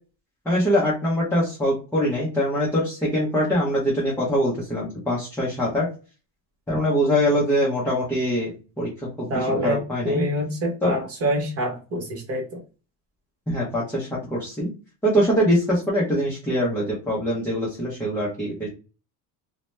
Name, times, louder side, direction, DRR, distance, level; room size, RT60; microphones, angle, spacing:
voice 1, 0.5-5.9 6.7-8.9 9.2-10.2 10.8-11.0 13.5-14.7 15.0-18.7, equal, 5° left, -6 dB, 0.6 m, -23 dB
voice 2, 9.3-12.6, equal, 30° right, 1 dB, 1.1 m, -26 dB
2.7 x 2.2 x 3.1 m, 0.33 s
cardioid pair, 175°, 46 cm